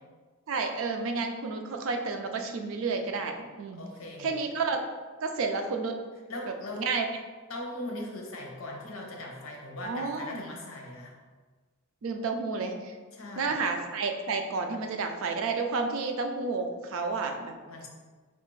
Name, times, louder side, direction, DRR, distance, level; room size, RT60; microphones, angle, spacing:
voice 1, 0.5-3.8 4.2-4.8 5.2-6.0 6.8-7.1 9.8-10.4 12.0-12.9 13.4-17.5, right 4 dB, 70° right, 5 dB, 0.4 m, -31 dB
voice 2, 3.7-4.4 6.3-6.9 7.5-11.1 13.1-13.6 17.7-17.9, left 1 dB, 75° left, 0 dB, 0.8 m, -39 dB
4.3 x 2.4 x 3.1 m, 1.4 s
head